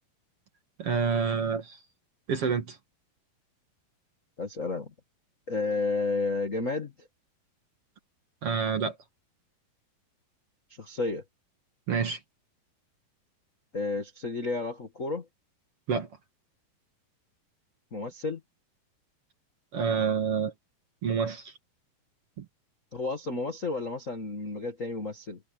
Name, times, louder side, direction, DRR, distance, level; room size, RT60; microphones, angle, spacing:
voice 1, 0.8-1.8 2.3-2.8 8.4-9.0 11.9-12.2 15.9-16.1 19.7-20.5 21.0-21.5 22.4-22.5, right 6 dB, 45° right, 2.4 m, -28 dB
voice 2, 4.4-4.9 5.5-6.9 10.8-11.2 13.7-15.2 17.9-18.4 22.9-25.4, left 3 dB, 40° left, 1.1 m, -31 dB
omnidirectional pair, 4.3 m